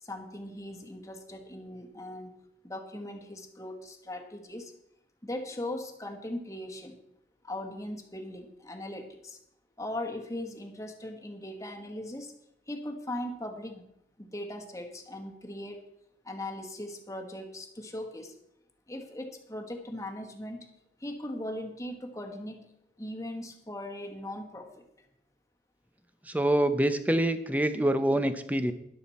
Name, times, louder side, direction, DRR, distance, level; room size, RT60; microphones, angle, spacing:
voice 1, 0.0-2.3 2.6-4.7 5.2-7.0 7.4-9.4 9.8-12.3 12.7-13.8 14.2-15.8 16.2-18.3 18.9-20.7 21.0-22.6 23.0-24.8, left 1 dB, 20° left, 4 dB, 1.3 m, -39 dB
voice 2, 26.3-28.7, right 1 dB, 10° right, 10 dB, 0.6 m, -26 dB
13.0 x 11.0 x 4.2 m, 0.80 s
head